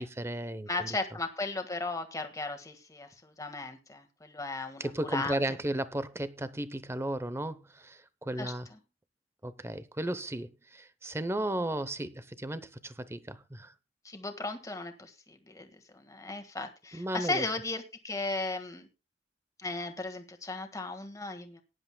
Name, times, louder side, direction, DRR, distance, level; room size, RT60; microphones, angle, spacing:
voice 1, 0.0-1.0 4.8-8.7 9.4-13.7 16.9-17.4, right 1 dB, 15° right, 0.7 m, -35 dB
voice 2, 0.7-5.4 8.4-8.5 14.0-18.9 19.6-21.6, left 3 dB, 20° left, 1.6 m, -36 dB
18.5 x 10.5 x 2.2 m
head